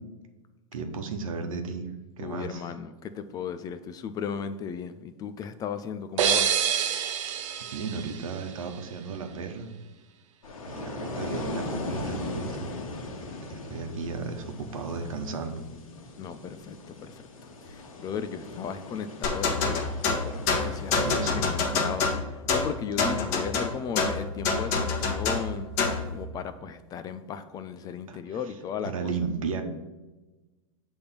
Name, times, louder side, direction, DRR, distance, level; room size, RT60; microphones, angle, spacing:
voice 1, 0.7-1.9 2.2-2.6 7.7-9.7 10.7-12.7 13.5-15.6 20.9-21.5 28.1-28.2 28.8-29.6, right 5 dB, 85° right, 6 dB, 1.1 m, -34 dB
voice 2, 2.2-6.6 16.2-17.2 17.6-19.9 20.2-25.7 26.1-29.1, left 7 dB, 20° left, 11 dB, 0.4 m, -36 dB
sound 1, 6.2-8.9, right 8 dB, 65° right, 0.8 m, -28 dB
sound 2, 10.4-21.1, left 2 dB, 85° left, 1.3 m, -39 dB
sound 3, 19.2-26.1, left 4 dB, 45° left, 1.3 m, -26 dB
6.8 x 3.5 x 5.6 m, 1.1 s
hypercardioid pair, 130°, 17 cm